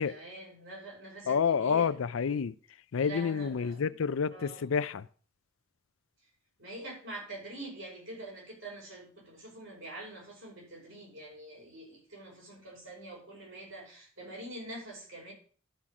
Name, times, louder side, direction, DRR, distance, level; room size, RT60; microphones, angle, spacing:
voice 1, 0.0-1.9 3.0-3.9 4.3-4.7 6.6-15.3, right 1 dB, 75° right, 5.4 m, -45 dB
voice 2, 1.3-2.5 2.9-5.1, left 6 dB, 85° left, 0.5 m, -29 dB
11.5 x 5.9 x 4.8 m
head